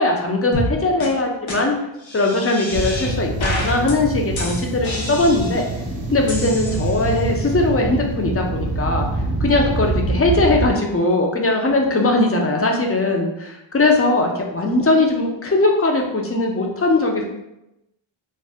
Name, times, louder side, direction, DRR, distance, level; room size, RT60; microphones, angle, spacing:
voice 1, 0.0-1.7 2.1-5.7 6.1-17.3, left 2 dB, 30° left, 1 dB, 0.4 m, -20 dB
sound 1, 0.5-0.7 1.0-1.1 1.5-1.6 2.0-3.1 3.4-3.9 4.4-5.8 6.3-7.2, left 2 dB, 75° left, 0.7 m, -29 dB
sound 2, 2.7-10.7, right 2 dB, 50° right, 0.6 m, -25 dB
2.6 x 2.1 x 3.3 m, 0.88 s
wide cardioid pair, 100°, 48 cm